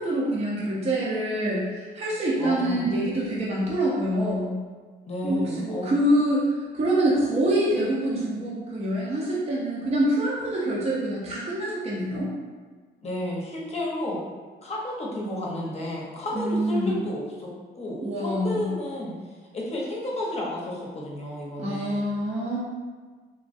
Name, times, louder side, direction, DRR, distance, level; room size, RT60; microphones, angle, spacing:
voice 1, 0.0-4.5 5.2-6.4 6.7-12.3 16.3-17.0 18.0-18.7 21.6-22.6, right 1 dB, 30° right, -6 dB, 0.6 m, -25 dB
voice 2, 2.4-3.0 5.0-5.9 13.0-14.2 14.6-22.1, left 1 dB, 30° left, -4 dB, 0.8 m, -32 dB
3.3 x 2.2 x 2.5 m, 1.4 s
cardioid pair, 90°, 20 cm